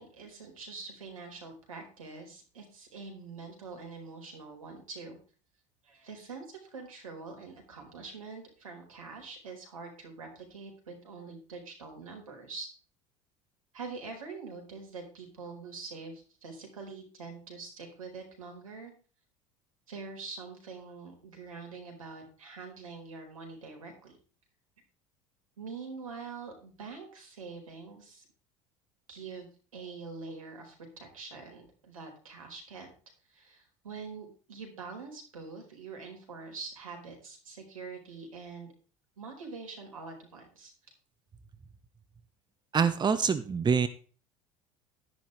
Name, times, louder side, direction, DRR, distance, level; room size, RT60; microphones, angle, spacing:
voice 1, 0.0-5.2 5.8-12.7 13.7-18.9 19.9-24.2 25.6-28.3 29.1-29.5 29.7-32.9 33.3-38.7 39.2-40.7, right 4 dB, 90° right, 3 dB, 4.5 m, -44 dB
voice 2, 42.7-43.9, right 6 dB, 25° right, 11 dB, 1.2 m, -25 dB
11.5 x 10.5 x 3.3 m, 0.39 s
hypercardioid pair, 75°, 17 cm